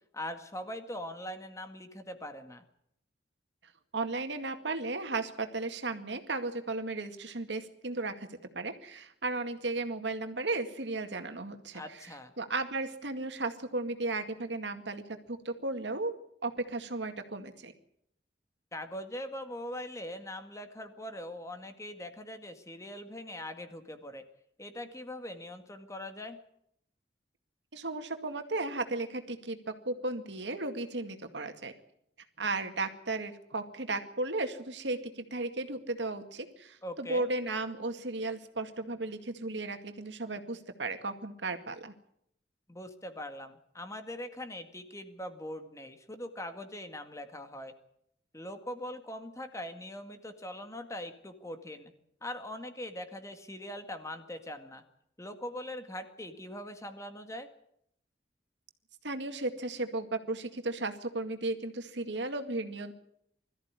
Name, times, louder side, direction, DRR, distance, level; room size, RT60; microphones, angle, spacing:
voice 1, 0.1-2.6 11.7-12.3 18.7-24.2 24.6-26.4 36.8-37.3 42.7-47.7 48.3-51.9 52.2-54.8 55.2-57.5, left 1 dB, 15° left, 7 dB, 1.9 m, -42 dB
voice 2, 3.9-8.3 8.5-11.8 12.4-15.0 15.3-16.1 16.4-17.7 27.7-31.7 32.4-41.9 59.0-62.9, right 2 dB, 85° right, 7 dB, 2.1 m, -35 dB
21.5 x 14.0 x 9.7 m, 0.74 s
head